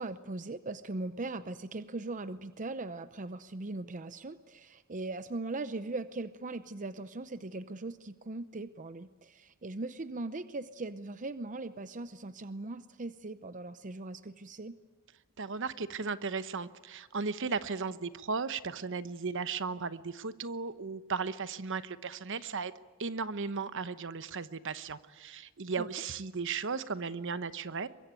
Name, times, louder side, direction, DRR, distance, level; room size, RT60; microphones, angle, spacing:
voice 1, 0.0-14.8 25.8-25.9, right 2 dB, 35° right, 12 dB, 0.7 m, -39 dB
voice 2, 15.4-22.7 23.0-27.9, right 5 dB, 60° right, 13 dB, 1.0 m, -36 dB
23.5 x 22.0 x 9.1 m, 1.3 s
head